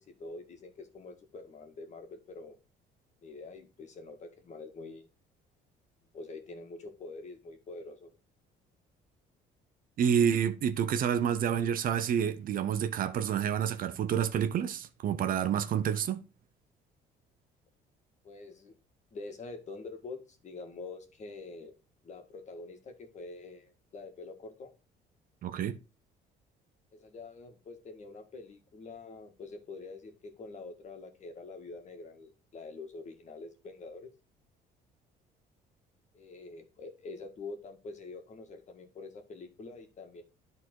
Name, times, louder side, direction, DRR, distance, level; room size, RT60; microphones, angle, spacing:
voice 1, 0.0-2.6 3.2-5.1 6.1-8.1 18.2-18.7 19.1-21.7 22.0-24.7 26.9-34.1 36.1-40.2, left 3 dB, 45° left, 1.9 m, -46 dB
voice 2, 10.0-16.2 25.4-25.8, right 8 dB, 55° right, 0.8 m, -28 dB
10.5 x 4.0 x 4.6 m
cardioid pair, 110°, 17 cm